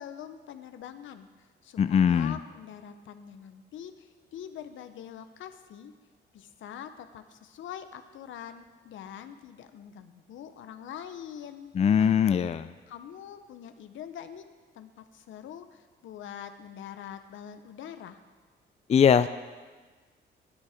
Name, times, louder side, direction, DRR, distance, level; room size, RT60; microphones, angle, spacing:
voice 1, 0.0-5.9 6.3-12.1 12.9-14.4 14.7-18.2, left 9 dB, 75° left, 9 dB, 0.9 m, -44 dB
voice 2, 1.8-2.4 11.7-12.7 18.9-19.3, left 7 dB, 35° left, 12 dB, 0.4 m, -21 dB
12.5 x 9.4 x 5.0 m, 1.3 s
cardioid pair, 90°, 20 cm